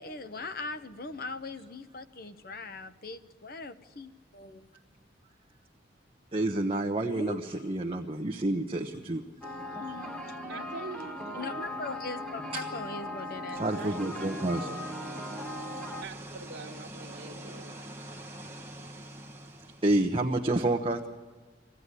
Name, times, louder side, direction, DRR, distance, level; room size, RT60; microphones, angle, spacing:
voice 1, 0.0-4.7 7.1-7.4 9.8-10.7 11.3-13.7, left 3 dB, 55° left, 0.9 m, -40 dB
voice 2, 6.3-9.2 12.5-12.6 13.6-14.7 15.8-15.9 19.8-21.1, right 2 dB, 30° right, 1.0 m, -29 dB
sound 1, 9.4-16.0, left 1 dB, 5° left, 1.4 m, -39 dB
voice 3, 10.5-11.7 13.6-14.8 16.0-17.8, right 3 dB, 85° right, 1.4 m, -44 dB
sound 2, 13.4-20.1, right 1 dB, 15° right, 1.5 m, -45 dB
23.0 x 15.5 x 9.8 m
head